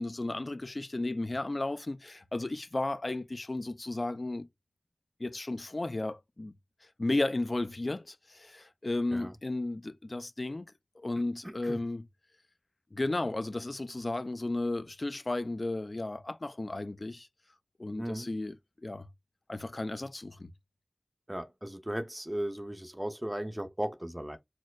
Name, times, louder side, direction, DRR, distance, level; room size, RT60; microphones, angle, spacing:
voice 1, 0.0-4.5 5.2-6.5 7.0-10.6 11.0-12.0 12.9-17.3 17.8-19.1 19.5-20.5, left 2 dB, 55° left, 0.3 m, -34 dB
voice 2, 11.4-11.8 18.0-18.3 21.3-24.4, right 1 dB, 15° right, 0.6 m, -36 dB
4.4 x 2.1 x 2.3 m
wide cardioid pair, 40°, 0 cm